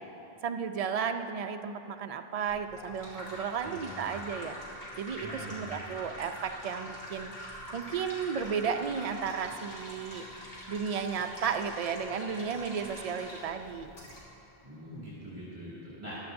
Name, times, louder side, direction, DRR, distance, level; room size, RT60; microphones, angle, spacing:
voice 1, 0.4-4.6 5.0-7.3 7.7-10.2 10.7-13.9, right 6 dB, 55° right, 7 dB, 0.4 m, -33 dB
sound 1, 2.5-14.2, equal, 70° left, 2.5 m, -44 dB
voice 2, 3.6-4.0 5.2-5.7 14.6-16.2, equal, 30° right, -10 dB, 2.3 m, -43 dB
14.5 x 11.5 x 2.6 m, 2.9 s
omnidirectional pair, 1.1 m